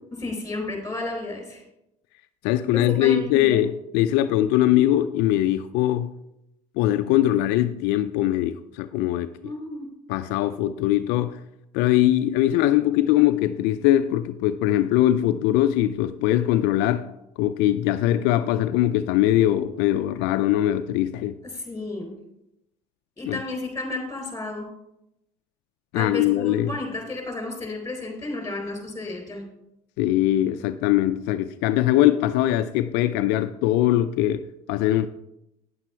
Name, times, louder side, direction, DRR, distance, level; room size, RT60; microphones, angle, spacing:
voice 1, 0.1-1.6 2.7-3.6 9.4-9.9 21.5-22.1 23.2-24.7 25.9-29.4, left 2 dB, 15° left, 4.0 m, -32 dB
voice 2, 2.4-6.1 6.8-9.5 10.1-11.4 11.7-17.1 17.4-21.4 23.3-23.4 25.9-26.7 30.0-35.1, left 13 dB, 75° left, 0.5 m, -21 dB
9.5 x 8.1 x 4.5 m
supercardioid pair, 80°, 18 cm